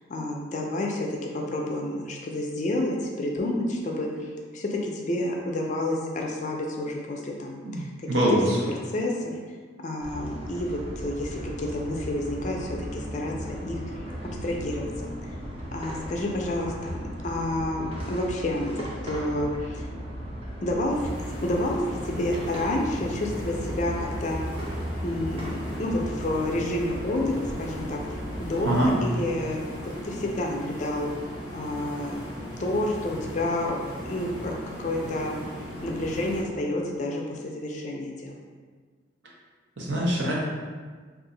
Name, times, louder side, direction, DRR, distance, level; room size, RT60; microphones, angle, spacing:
voice 1, 0.1-4.3 4.5-8.1 8.9-9.3 9.8-13.8 14.4-14.9 15.7-17.0 17.2-19.9 20.6-21.0 21.4-24.4 25.0-28.0 28.4-29.6 30.0-31.1 31.5-32.1 32.6-35.4 35.8-38.3, left 1 dB, 40° left, 0 dB, 0.4 m, -29 dB
voice 2, 7.6-8.7 28.6-29.0 39.8-40.3, equal, 70° right, -5 dB, 0.8 m, -24 dB
sound 1, 10.0-28.9, equal, 30° right, 0.6 m, -36 dB
sound 2, 20.9-36.4, equal, 45° right, 1.5 m, -38 dB
2.7 x 2.4 x 3.9 m, 1.5 s
head